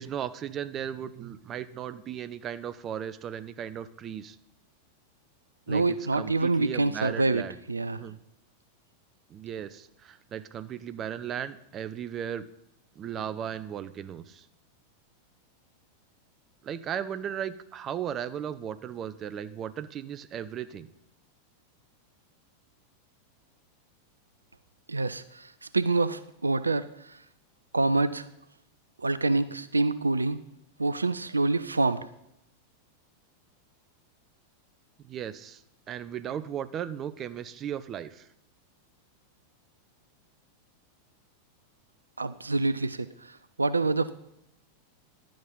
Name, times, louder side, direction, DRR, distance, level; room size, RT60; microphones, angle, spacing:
voice 1, 0.0-4.4 5.7-7.6 7.9-8.2 9.3-12.5 13.0-14.5 16.6-20.9 35.0-35.6 35.9-38.3, right 9 dB, 30° right, 13 dB, 0.6 m, -36 dB
voice 2, 5.7-7.4 7.7-8.0 24.9-27.2 27.7-28.3 29.0-30.4 30.8-32.1 42.2-44.1, right 3 dB, 80° right, 15 dB, 0.4 m, -26 dB
11.5 x 7.8 x 5.4 m, 0.81 s
figure-of-eight pair, 90°, 0 cm